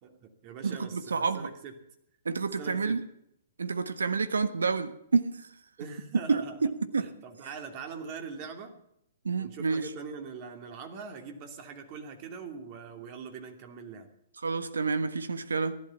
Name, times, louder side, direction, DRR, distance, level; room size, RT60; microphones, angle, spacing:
voice 1, 0.0-1.7 2.6-3.0 5.8-6.6 7.0-8.8 9.4-14.1, right 5 dB, 40° right, 5 dB, 2.7 m, -42 dB
voice 2, 0.6-1.5 2.2-3.0 3.6-5.5 6.3-7.1 9.2-9.9 14.4-15.8, right 4 dB, 80° right, 12 dB, 1.3 m, -29 dB
15.5 x 12.0 x 7.2 m, 0.78 s
hypercardioid pair, 120°, 0 cm